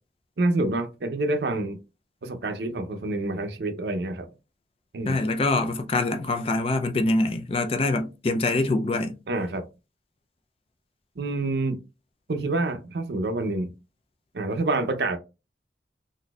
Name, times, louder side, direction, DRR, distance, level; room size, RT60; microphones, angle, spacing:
voice 1, 0.4-1.8 2.2-4.3 4.9-5.2 9.3-9.6 11.2-11.8 12.3-13.7 14.3-15.2, right 2 dB, 65° right, 0.5 m, -27 dB
voice 2, 5.1-9.2, left 2 dB, 30° left, 0.4 m, -24 dB
4.0 x 2.6 x 2.3 m
head